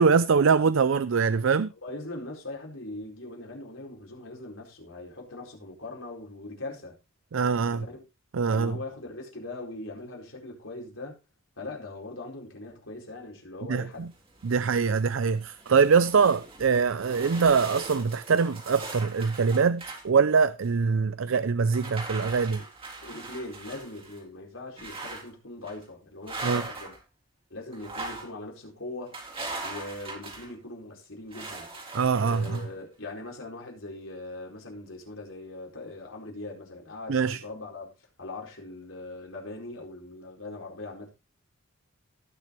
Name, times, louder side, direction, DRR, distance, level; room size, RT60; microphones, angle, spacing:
voice 1, 0.0-1.7 7.3-7.8 8.3-8.8 13.7-14.1 14.4-22.6 26.4-26.6 31.9-32.4 37.1-37.4, right 5 dB, 70° right, 0.5 m, -23 dB
voice 2, 1.8-7.0 7.6-8.0 8.5-11.2 11.6-14.1 23.0-26.9 27.5-29.2 29.6-31.7 32.2-37.9 38.2-41.1, left 2 dB, 75° left, 4.6 m, -41 dB
sound 1, 14.1-15.0 15.4-20.0 20.6-20.7 21.7-24.2 24.8-25.3 25.6-25.8 26.3-27.0 27.7-28.3 29.1-30.5 31.3-32.7, right 3 dB, 25° right, 3.6 m, -40 dB
18.5 x 6.6 x 3.1 m
head